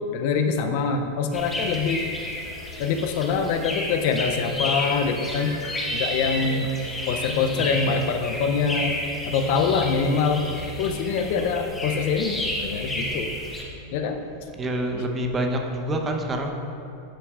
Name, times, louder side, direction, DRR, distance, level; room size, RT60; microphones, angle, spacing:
voice 1, 0.1-2.1 2.8-5.6 5.9-9.0 9.3-10.5 10.8-13.3 13.9-14.2, left 5 dB, 60° left, 6 dB, 0.5 m, -24 dB
sound 1, 1.3-13.6, left 1 dB, 15° left, 1.2 m, -31 dB
voice 2, 7.1-7.7 14.6-16.5, right 1 dB, 25° right, 3 dB, 0.8 m, -27 dB
sound 2, 7.9-13.8, right 2 dB, 75° right, 0.5 m, -47 dB
9.7 x 5.8 x 2.4 m, 2.6 s
hypercardioid pair, 105°, 0 cm